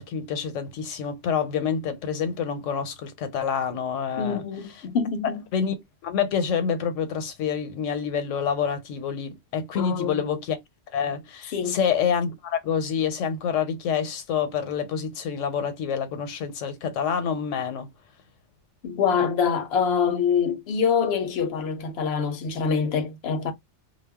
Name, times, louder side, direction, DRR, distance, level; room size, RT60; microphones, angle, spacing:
voice 1, 0.0-4.4 5.2-5.7 6.0-10.6 10.9-17.9, left 7 dB, 85° left, 1.0 m, -27 dB
voice 2, 4.2-5.4 9.7-10.2 11.5-11.8 18.8-23.5, left 6 dB, 65° left, 0.7 m, -25 dB
2.2 x 2.0 x 3.4 m
omnidirectional pair, 1.3 m